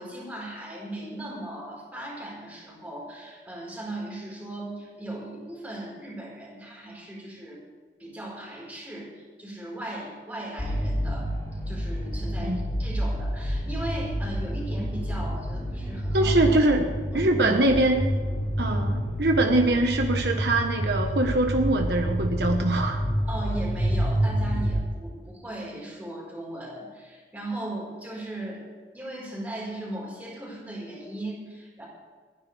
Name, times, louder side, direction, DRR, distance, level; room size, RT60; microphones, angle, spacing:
voice 1, 0.0-7.6 8.0-11.3 11.7-16.5 17.1-17.6 18.6-18.8 23.3-28.6 28.9-31.8, right 1 dB, 10° right, -5 dB, 4.7 m, -37 dB
sound 1, 10.6-24.7, equal, 15° left, 4.4 m, -28 dB
voice 2, 16.1-16.9 17.1-18.1 18.6-18.9 19.2-23.0, right 2 dB, 70° right, 3 dB, 1.3 m, -23 dB
29.0 x 10.5 x 3.4 m, 1.5 s
head